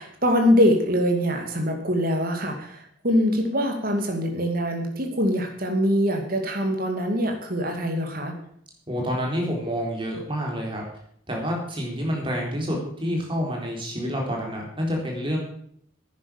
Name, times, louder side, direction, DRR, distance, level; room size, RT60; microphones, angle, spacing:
voice 1, 0.0-8.3, equal, 45° right, 3 dB, 2.6 m, -23 dB
voice 2, 8.9-10.8 11.3-15.4, equal, 25° right, -1 dB, 4.0 m, -28 dB
11.0 x 9.4 x 7.4 m, 0.67 s
head